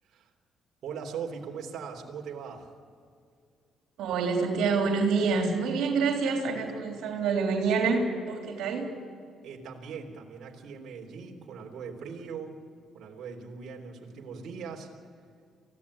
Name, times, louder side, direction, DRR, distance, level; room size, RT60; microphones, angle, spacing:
voice 1, 0.8-2.7 9.4-12.6 12.9-14.9, right 6 dB, 70° right, 1 dB, 3.6 m, -40 dB
voice 2, 4.0-8.9, right 4 dB, 85° right, 2 dB, 3.5 m, -27 dB
24.5 x 16.5 x 9.9 m, 2.2 s
cardioid pair, 90°, 0 cm